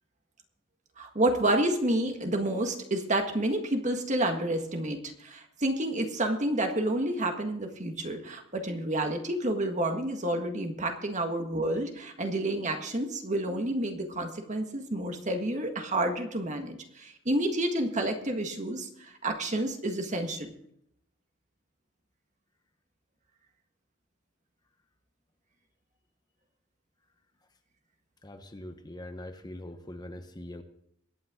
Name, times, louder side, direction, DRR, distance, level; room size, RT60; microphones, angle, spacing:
voice 1, 1.0-20.5, right 1 dB, 35° right, 5 dB, 1.7 m, -29 dB
voice 2, 28.2-30.6, left 1 dB, 20° left, 6 dB, 1.1 m, -42 dB
23.0 x 9.0 x 3.8 m, 0.73 s
head